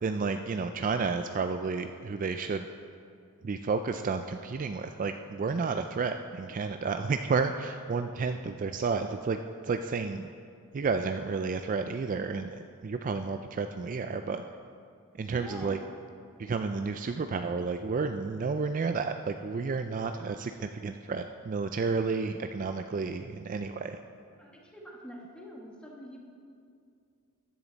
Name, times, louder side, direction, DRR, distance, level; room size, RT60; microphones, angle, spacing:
voice 1, 0.0-2.7 3.4-10.3 10.7-12.5 12.8-14.4 15.1-15.8 16.4-24.0, right 4 dB, 35° right, 7 dB, 0.3 m, -31 dB
voice 2, 15.3-15.8 16.7-16.8 19.8-19.9 24.4-26.2, equal, 5° left, -2 dB, 1.6 m, -46 dB
14.5 x 10.5 x 4.0 m, 2.3 s
head